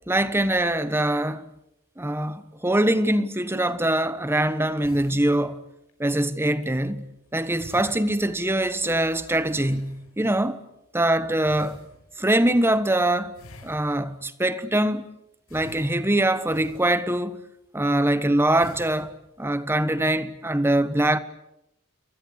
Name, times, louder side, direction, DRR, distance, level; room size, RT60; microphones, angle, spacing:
voice 1, 0.1-1.5 2.0-5.6 6.0-7.0 7.3-10.6 10.9-11.8 12.2-13.3 13.6-15.1 15.5-17.4 17.7-21.2, right 1 dB, 10° right, 1.2 m, -23 dB
sound 1, 4.8-5.9 6.5-6.7 7.2-7.3 7.5-10.3 11.4-12.3 13.3-14.3 15.5-17.4 17.9-18.1 18.5-19.3, left 1 dB, 75° left, 5.7 m, -48 dB
29.5 x 22.5 x 8.2 m
head